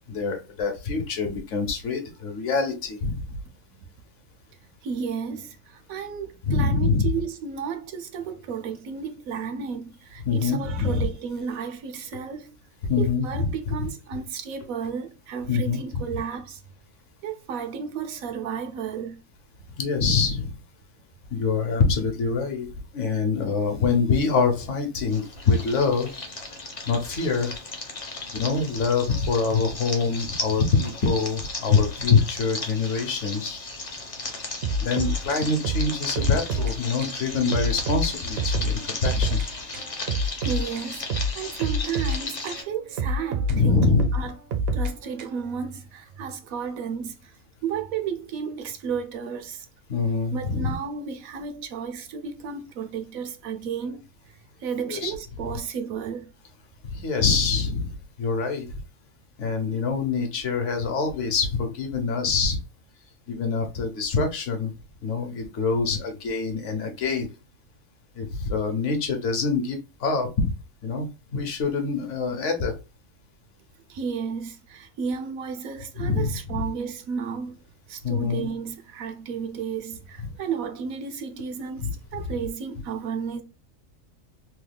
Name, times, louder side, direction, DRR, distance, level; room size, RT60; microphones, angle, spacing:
voice 1, 0.0-3.3 6.4-7.1 10.3-11.1 12.8-13.9 15.5-15.8 19.8-20.5 21.3-26.1 26.8-27.5 28.3-33.6 34.8-39.4 43.5-44.1 49.9-50.7 54.9-55.1 56.8-58.8 59.4-62.6 63.3-64.7 65.0-67.3 68.1-70.5 70.8-72.8 76.0-76.6 78.0-78.5 81.8-81.9, left 4 dB, 65° left, 1.1 m, -25 dB
voice 2, 4.8-12.6 13.0-16.6 17.2-19.2 40.2-44.4 44.7-49.7 50.3-54.0 54.6-56.3 73.9-77.6 77.9-83.4, right 6 dB, 85° right, 1.1 m, -33 dB
sound 1, 25.1-42.6, left 3 dB, 35° left, 0.6 m, -36 dB
sound 2, 34.6-36.8 37.0-37.2 37.5-39.5 39.7-42.6 43.0-45.5, right 1 dB, 60° right, 0.7 m, -27 dB
3.1 x 2.2 x 3.3 m
omnidirectional pair, 1.4 m